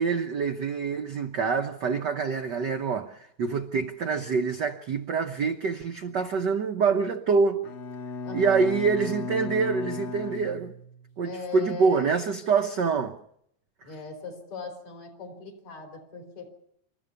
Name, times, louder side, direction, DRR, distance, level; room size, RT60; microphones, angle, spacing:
voice 1, 0.0-7.6 8.3-10.7 11.2-13.2, right 5 dB, 85° right, 0.9 m, -26 dB
Bowed string instrument, 7.6-11.2, left 4 dB, 50° left, 2.2 m, -35 dB
voice 2, 8.2-8.7 11.2-12.2 13.8-16.5, left 4 dB, 70° left, 5.5 m, -40 dB
28.0 x 14.0 x 7.0 m
omnidirectional pair, 3.3 m